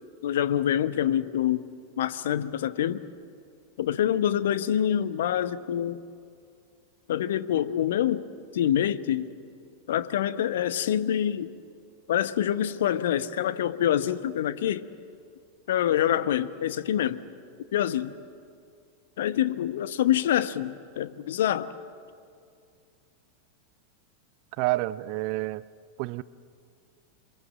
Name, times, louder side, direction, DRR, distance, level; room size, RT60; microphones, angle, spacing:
voice 1, 0.2-1.7 2.0-3.1 3.8-6.0 7.1-8.3 8.5-9.3 9.9-11.6 12.1-14.9 15.7-17.2 17.7-18.1 19.2-21.7, left 10 dB, 60° left, 1.0 m, -26 dB
voice 2, 24.6-25.6 26.0-26.2, right 19 dB, 45° right, 0.6 m, -28 dB
28.5 x 24.5 x 7.7 m
figure-of-eight pair, 90°, 0 cm